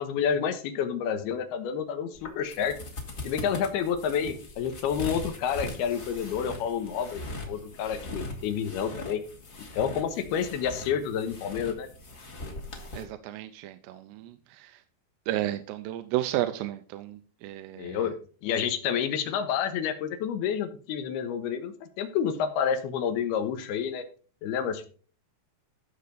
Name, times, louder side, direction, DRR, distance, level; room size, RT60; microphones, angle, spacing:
voice 1, 0.0-2.8 3.2-9.2 9.7-11.9 17.8-24.1 24.4-24.9, left 8 dB, 75° left, 9 dB, 2.9 m, -29 dB
sound 1, 2.1-13.0, left 2 dB, 35° left, 1.7 m, -40 dB
voice 2, 12.9-14.7 15.3-18.0, right 14 dB, 90° right, 10 dB, 2.8 m, -33 dB
15.0 x 6.7 x 4.0 m, 0.40 s
omnidirectional pair, 4.9 m